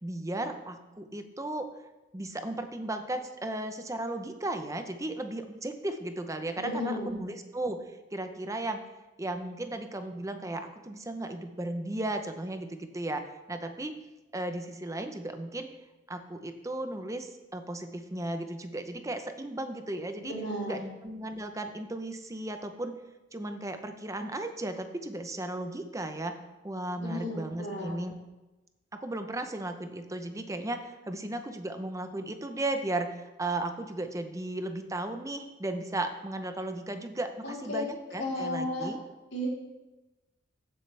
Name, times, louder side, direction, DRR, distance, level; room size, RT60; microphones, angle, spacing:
voice 1, 0.0-1.7 2.1-7.8 8.1-8.9 9.2-12.7 12.9-13.9 14.3-15.7 16.1-20.3 20.7-22.9 23.3-26.4 26.6-28.2 28.9-39.0, right 2 dB, 15° right, 7 dB, 0.7 m, -35 dB
voice 2, 6.6-7.1 20.2-20.8 27.0-27.9 37.4-37.8 38.2-38.9 39.3-39.5, left 1 dB, 70° left, -5 dB, 4.0 m, -34 dB
15.0 x 7.7 x 3.4 m, 1.1 s
head